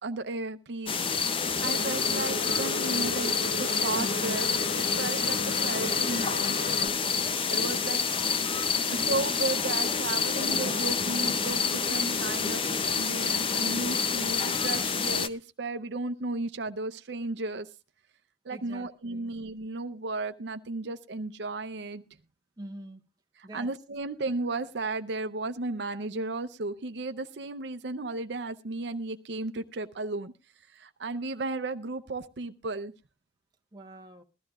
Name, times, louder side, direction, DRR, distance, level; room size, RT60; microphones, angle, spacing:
voice 1, 0.0-0.9 1.2-4.5 4.8-6.5 7.5-8.0 8.4-12.6 13.0-17.7 18.4-22.0 23.5-30.3 30.7-32.9, right 3 dB, 70° right, 0.6 m, -34 dB
sound 1, 0.9-15.3, left 5 dB, 30° left, 0.6 m, -28 dB
sound 2, 1.5-6.9, left 1 dB, 60° left, 1.0 m, -36 dB
voice 2, 18.5-19.3 22.6-23.0 23.4-23.8 33.7-34.2, right 1 dB, 20° right, 1.1 m, -45 dB
20.5 x 13.5 x 2.4 m
head